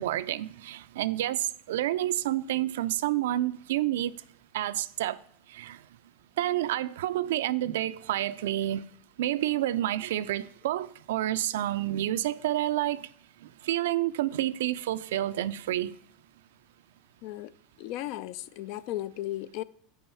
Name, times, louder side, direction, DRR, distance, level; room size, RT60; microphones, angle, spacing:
voice 1, 0.0-4.1 4.5-5.2 5.5-5.8 6.4-8.8 9.2-13.1 13.6-15.9, right 13 dB, 85° right, 0.3 m, -29 dB
voice 2, 17.8-19.6, left 14 dB, 60° left, 0.3 m, -35 dB
5.6 x 5.3 x 5.5 m
supercardioid pair, 125°, 0 cm